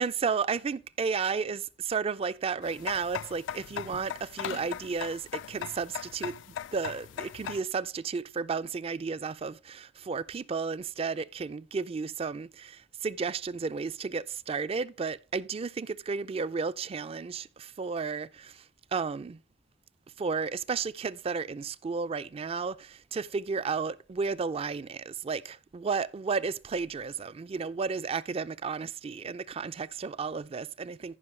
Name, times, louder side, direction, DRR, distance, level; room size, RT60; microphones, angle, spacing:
voice 1, 0.0-6.4 6.7-18.6 18.9-19.4 20.2-31.2, right 5 dB, 30° right, 0.3 m, -33 dB
sound 1, 2.6-7.6, left 9 dB, 70° left, 0.3 m, -39 dB
14.0 x 5.6 x 3.2 m
head